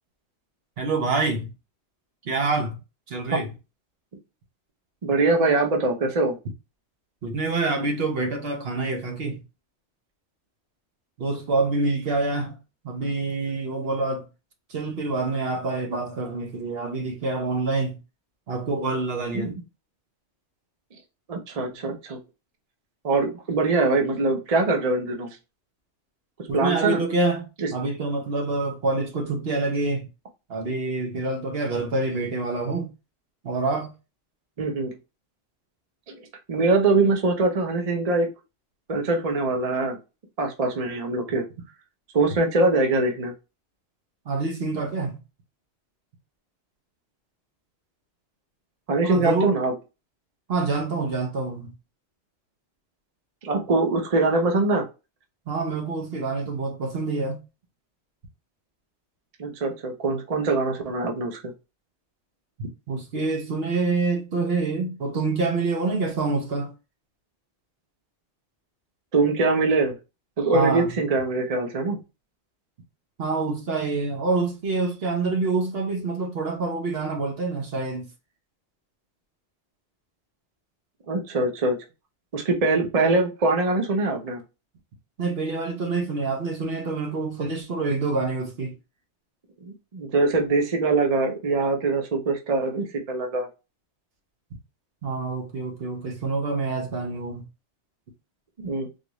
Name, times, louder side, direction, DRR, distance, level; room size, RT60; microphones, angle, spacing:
voice 1, 0.8-1.5 2.2-2.8 3.1-3.5 7.2-9.4 11.2-12.6 12.8-14.3 14.7-18.0 18.5-19.6 26.5-30.1 30.5-32.9 33.4-33.9 44.3-45.2 49.0-49.6 50.5-51.7 55.5-57.4 62.9-66.7 70.5-70.9 73.2-78.1 85.2-88.8 95.0-97.5, right 3 dB, 60° right, 1.0 m, -26 dB
voice 2, 5.0-6.3 19.4-19.5 21.3-22.2 23.0-25.3 26.5-27.0 27.6-27.7 34.6-34.9 36.1-36.2 36.5-38.3 38.9-40.0 40.4-41.4 42.1-43.3 48.9-49.7 53.4-54.9 59.4-61.4 69.1-69.9 70.4-72.0 81.1-81.8 82.3-84.4 89.6-93.5 98.6-98.9, right 3 dB, 40° right, 0.7 m, -23 dB
3.9 x 2.5 x 3.0 m
omnidirectional pair, 1.2 m